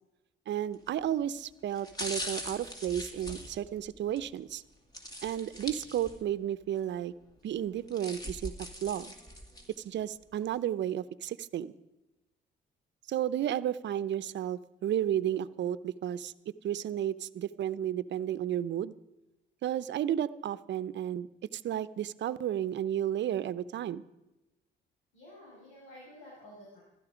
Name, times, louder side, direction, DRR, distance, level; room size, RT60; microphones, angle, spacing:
voice 1, 0.5-4.6 5.2-7.1 7.4-9.1 9.8-11.7 13.1-16.3 16.6-18.9 19.6-21.3 21.5-24.0, right 11 dB, 65° right, 16 dB, 0.7 m, -32 dB
sound 1, 0.7-1.0 1.7-4.2 4.9-6.4 6.8-6.9 7.7-9.8 10.3-10.4, equal, 20° left, 2.4 m, -41 dB
voice 2, 25.1-26.8, left 1 dB, 80° left, -5 dB, 5.9 m, -51 dB
15.5 x 13.0 x 5.0 m, 0.99 s
cardioid pair, 90°, 20 cm